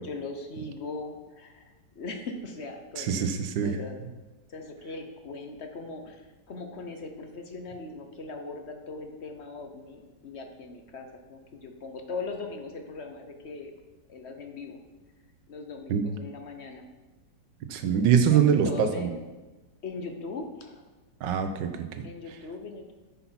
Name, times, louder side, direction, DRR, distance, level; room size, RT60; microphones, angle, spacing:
voice 1, 0.0-3.3 3.6-4.0 4.5-13.7 14.1-14.8 15.5-16.9 17.8-19.2 19.8-20.9 22.0-22.9, left 3 dB, 45° left, 5 dB, 1.0 m, -40 dB
voice 2, 3.0-3.7 15.9-16.0 17.7-19.1 21.2-22.0, right 7 dB, 70° right, 8 dB, 1.5 m, -24 dB
9.9 x 5.7 x 5.8 m, 1.2 s
omnidirectional pair, 2.0 m